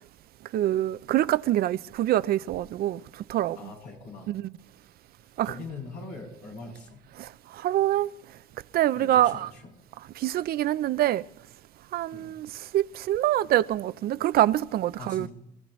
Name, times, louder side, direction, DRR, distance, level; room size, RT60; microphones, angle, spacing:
voice 1, 0.5-3.6 4.3-4.4 5.4-5.5 7.2-8.1 8.7-9.5 10.2-11.2 11.9-15.3, right 13 dB, 65° right, 0.6 m, -25 dB
voice 2, 3.6-4.4 5.2-7.0 8.9-9.7 12.1-12.3 15.0-15.3, left 3 dB, 85° left, 7.7 m, -42 dB
29.0 x 15.5 x 3.2 m
cardioid pair, 110°, 17 cm